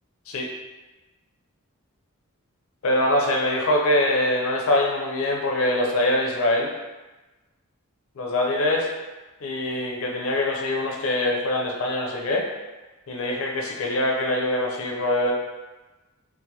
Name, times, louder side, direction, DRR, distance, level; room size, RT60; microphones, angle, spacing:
voice 1, 2.8-6.7 8.2-8.9 9.4-12.5 13.1-15.3, left 1 dB, 70° left, 0 dB, 0.4 m, -23 dB
2.2 x 2.1 x 2.7 m, 1.1 s
head